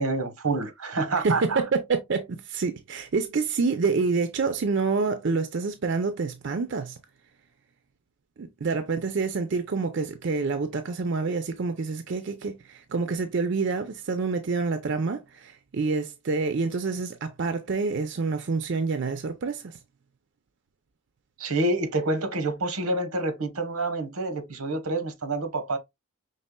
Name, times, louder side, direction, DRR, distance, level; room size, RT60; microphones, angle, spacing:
voice 1, 0.0-1.6 21.4-25.8, right 2 dB, 90° right, 1.0 m, -27 dB
voice 2, 1.2-7.0 8.4-19.6, right 4 dB, 55° right, 0.5 m, -27 dB
5.4 x 3.3 x 2.2 m
head